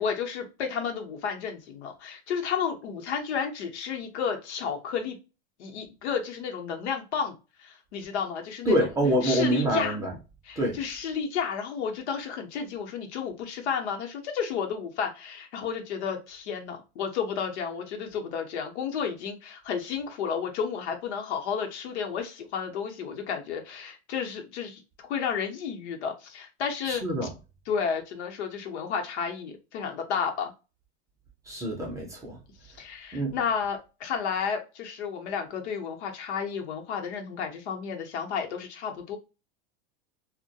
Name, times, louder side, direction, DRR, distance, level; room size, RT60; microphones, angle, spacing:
voice 1, 0.0-5.2 5.6-8.9 9.2-10.0 10.4-27.0 27.7-30.5 32.6-39.2, left 6 dB, 90° left, 0.8 m, -32 dB
voice 2, 8.7-10.1 10.6-10.8 26.8-27.3 31.5-32.4 33.1-33.4, right 1 dB, 10° right, 0.4 m, -26 dB
2.2 x 2.1 x 2.6 m
supercardioid pair, 145°, 33 cm